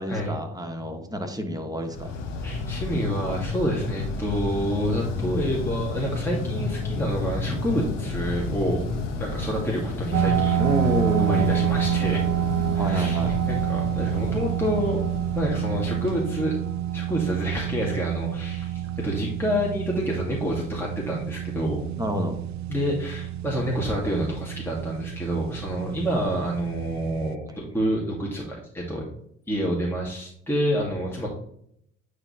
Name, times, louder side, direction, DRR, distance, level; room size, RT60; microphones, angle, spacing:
voice 1, 0.0-2.1 10.6-11.5 12.7-13.4 22.0-22.4 26.1-26.2 27.5-27.6, equal, 10° right, 4 dB, 1.4 m, -28 dB
sound 1, 1.9-16.9, left 3 dB, 90° left, 1.1 m, -31 dB
voice 2, 2.4-8.8 9.2-10.6 11.2-12.3 12.7-15.0 15.4-16.6 16.9-21.8 22.7-29.1 29.5-31.3, equal, 5° left, -3 dB, 1.9 m, -28 dB
sound 2, 10.1-27.3, right 11 dB, 50° right, 0.5 m, -28 dB
8.8 x 3.3 x 4.3 m, 0.70 s
hypercardioid pair, 50°, 36 cm